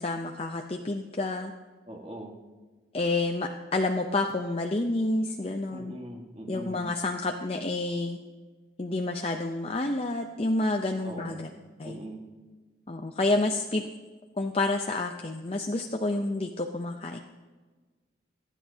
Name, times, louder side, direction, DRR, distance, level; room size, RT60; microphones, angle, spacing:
voice 1, 0.0-1.5 2.9-6.0 6.5-8.2 8.8-11.5 11.8-12.0 12.9-13.8 14.4-17.2, left 2 dB, 30° left, 3 dB, 0.6 m, -29 dB
voice 2, 1.9-2.3 5.7-6.8 11.0-11.5 11.8-12.3, right 1 dB, 30° right, 2 dB, 1.5 m, -41 dB
25.5 x 10.0 x 2.8 m, 1.3 s
head